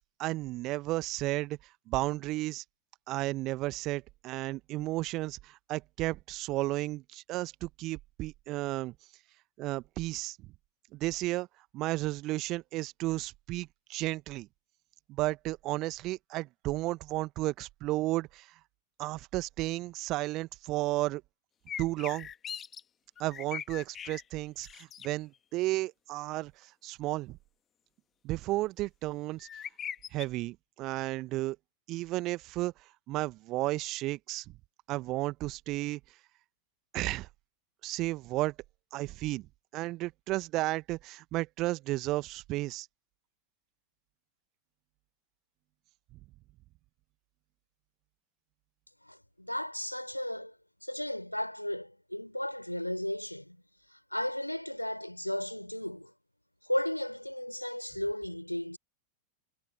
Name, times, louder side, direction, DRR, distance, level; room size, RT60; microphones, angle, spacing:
voice 1, 0.0-1.6 1.9-2.6 3.1-8.9 9.6-10.4 10.9-11.5 11.7-14.5 15.1-18.5 19.0-21.2 21.8-22.3 23.2-27.4 28.2-29.5 30.1-31.6 31.9-32.7 33.1-34.4 34.9-36.0 36.9-37.3 37.8-38.5 38.9-39.5 39.7-42.9, right 18 dB, 40° right, 1.4 m, -33 dB
sound 1, 21.7-22.8 23.2-24.2 24.6-25.1 29.4-30.3, left 8 dB, 25° left, 1.9 m, -40 dB
voice 2, 49.1-50.5 50.8-53.6 54.1-56.1 56.7-58.8, left 1 dB, 90° left, 4.2 m, -35 dB
figure-of-eight pair, 90°, 0 cm